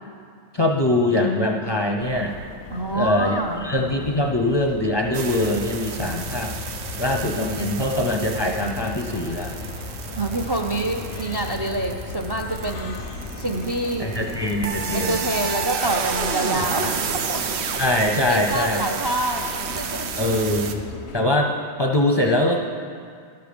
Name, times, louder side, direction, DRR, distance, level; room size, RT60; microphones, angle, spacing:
voice 1, 0.5-2.4 2.9-6.5 7.0-9.5 14.0-15.2 17.7-18.9 20.2-20.8 21.1-22.6, left 1 dB, 30° left, 1 dB, 0.5 m, -23 dB
sound 1, 2.0-21.3, left 5 dB, 90° left, 0.9 m, -39 dB
voice 2, 2.7-3.7 10.2-13.0 13.4-14.1 14.9-17.4 17.7-17.8 18.3-19.4 19.8-20.1, right 2 dB, 35° right, 3 dB, 0.4 m, -26 dB
sound 2, 5.1-20.7, right 6 dB, 85° right, 0.9 m, -31 dB
sound 3, 5.2-14.9, left 1 dB, 55° right, 1.3 m, -37 dB
12.0 x 6.8 x 5.1 m, 2.2 s
omnidirectional pair, 1.1 m